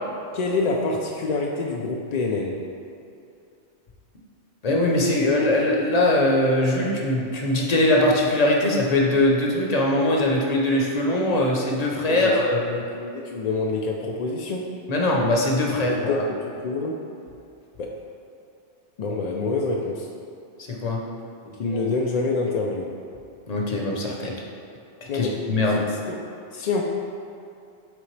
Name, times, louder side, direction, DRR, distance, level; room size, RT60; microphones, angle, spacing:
voice 1, 0.3-2.6 12.1-14.7 16.1-17.0 17.8-18.0 19.0-20.1 21.5-22.9 25.1-25.4 25.8-26.3 26.5-26.8, left 3 dB, 60° left, 0 dB, 0.4 m, -27 dB
voice 2, 4.6-12.6 14.9-16.2 20.7-21.0 23.5-24.3 25.1-25.8, left 1 dB, 40° left, -1 dB, 0.8 m, -21 dB
8.2 x 3.8 x 3.2 m, 2.6 s
omnidirectional pair, 1.2 m